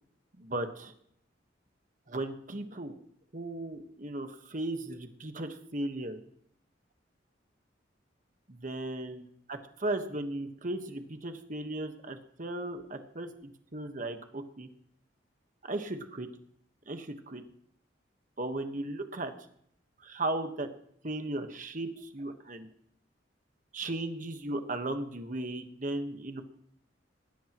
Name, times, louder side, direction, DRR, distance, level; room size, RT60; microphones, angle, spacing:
voice 1, 0.4-0.9 2.1-2.9 3.3-6.2 8.5-14.7 15.6-16.3 16.9-17.4 18.4-19.3 20.0-20.7 21.0-22.7 23.7-26.4, right 2 dB, 45° right, 7 dB, 1.4 m, -36 dB
20.5 x 16.5 x 3.1 m, 0.68 s
head